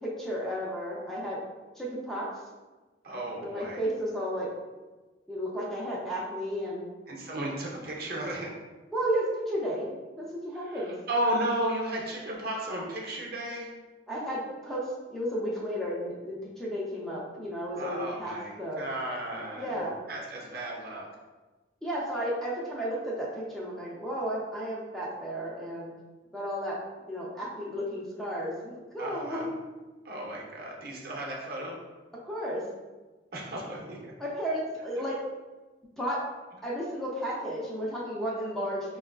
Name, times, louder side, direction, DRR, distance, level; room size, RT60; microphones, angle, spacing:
voice 1, 0.0-1.4 1.8-2.4 3.4-4.5 5.3-6.9 8.9-11.0 14.1-18.8 19.6-19.9 21.8-25.9 26.3-26.8 27.1-29.5 32.2-32.6 34.2-35.2 36.0-36.2 36.6-39.0, equal, ahead, -6 dB, 0.4 m, -33 dB
voice 2, 3.0-3.8 7.1-8.5 10.6-13.7 17.8-19.8 20.1-21.1 29.0-29.5 30.0-31.7 33.3-34.1, right 1 dB, 55° right, -1 dB, 0.6 m, -34 dB
4.5 x 2.3 x 2.2 m, 1.2 s
head